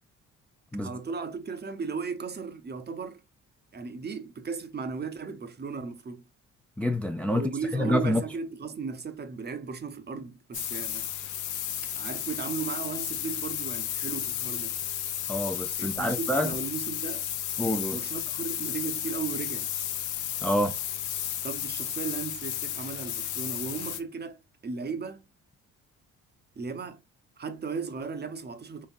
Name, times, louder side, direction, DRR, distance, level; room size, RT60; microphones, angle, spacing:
voice 1, 0.8-3.2 3.7-6.3 7.3-11.1 12.0-14.7 15.8-17.2 17.9-19.7 21.4-25.2 26.6-27.0 27.4-28.9, right 5 dB, 35° right, 0.7 m, -36 dB
voice 2, 6.8-7.4 7.7-8.2 15.3-16.5 17.6-18.0 20.4-20.7, left 1 dB, 5° left, 0.4 m, -27 dB
sound 1, 10.5-24.0, left 10 dB, 75° left, 0.7 m, -33 dB
3.9 x 3.4 x 2.5 m
cardioid pair, 90°, 30 cm